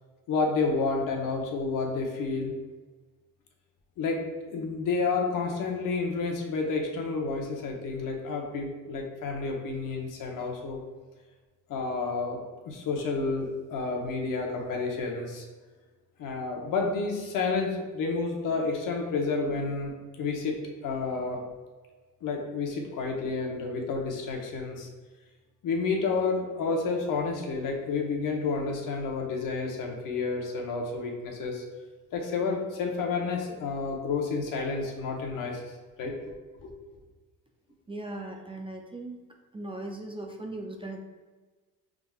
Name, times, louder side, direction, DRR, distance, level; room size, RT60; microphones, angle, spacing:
voice 1, 0.3-2.5 4.0-10.8 11.7-12.4 12.7-15.4 16.2-20.6 20.8-21.4 22.2-24.9 25.6-31.6 32.1-35.6 36.0-36.3 36.6-36.7, left 4 dB, 60° left, 1 dB, 1.1 m, -30 dB
voice 2, 37.9-39.2 39.5-41.0, right 2 dB, 15° right, 1 dB, 0.4 m, -38 dB
4.9 x 3.7 x 2.4 m, 1.3 s
supercardioid pair, 90°, 36 cm